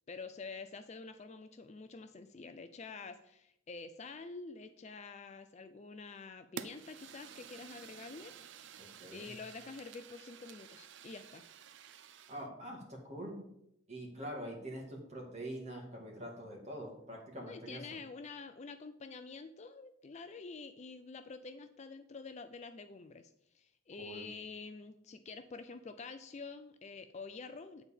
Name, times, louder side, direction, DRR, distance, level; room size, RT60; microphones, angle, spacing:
voice 1, 0.1-8.3 9.1-11.4 17.4-27.8, left 4 dB, 30° left, 9 dB, 0.4 m, -48 dB
Fire, 6.6-12.5, right 8 dB, 55° right, 0.5 m, -51 dB
voice 2, 8.8-9.3 12.3-13.5 13.9-18.0 24.0-24.3, right 1 dB, 30° right, 0 dB, 2.1 m, -45 dB
9.1 x 4.1 x 7.0 m, 0.78 s
head